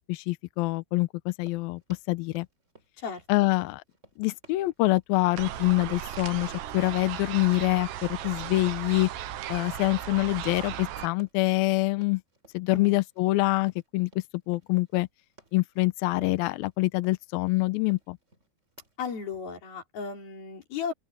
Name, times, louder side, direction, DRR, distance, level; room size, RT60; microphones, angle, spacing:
voice 1, 0.1-1.8 2.1-2.5 3.3-3.8 4.2-9.1 9.5-12.2 12.5-14.1 14.5-15.1 15.5-18.2, left 20 dB, 80° left, 2.2 m, -25 dB
Run, 1.3-19.0, right 2 dB, 15° right, 4.6 m, -57 dB
voice 2, 3.0-3.5 12.7-13.0 19.0-20.9, left 6 dB, 60° left, 6.3 m, -35 dB
sound 1, 5.4-11.1, right 11 dB, 80° right, 3.4 m, -36 dB
open air
omnidirectional pair, 4.9 m